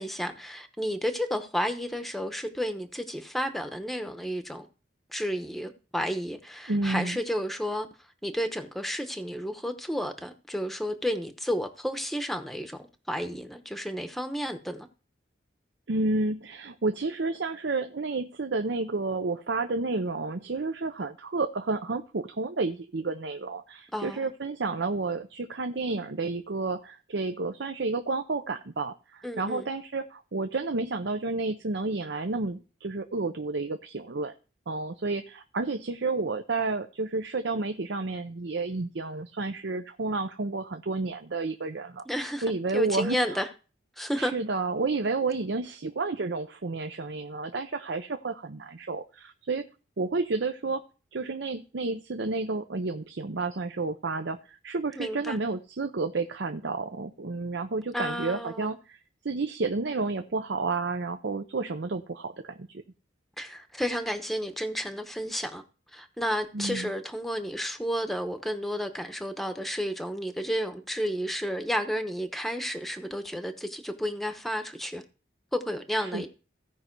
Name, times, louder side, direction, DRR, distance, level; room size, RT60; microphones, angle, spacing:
voice 1, 0.0-4.7 5.1-7.9 8.2-12.8 13.1-14.9 23.9-24.3 29.2-29.7 42.1-42.4 42.7-43.5 44.0-44.3 55.0-55.4 57.9-58.8 63.4-65.6 65.9-75.0 75.5-76.3, equal, ahead, 0.9 m, -31 dB
voice 2, 6.7-7.2 15.9-34.3 34.7-42.0 42.4-43.4 44.2-49.7 50.0-50.8 51.1-59.0 59.2-62.7 66.5-66.9 75.9-76.3, right 3 dB, 70° right, 0.7 m, -31 dB
16.0 x 5.5 x 4.5 m
head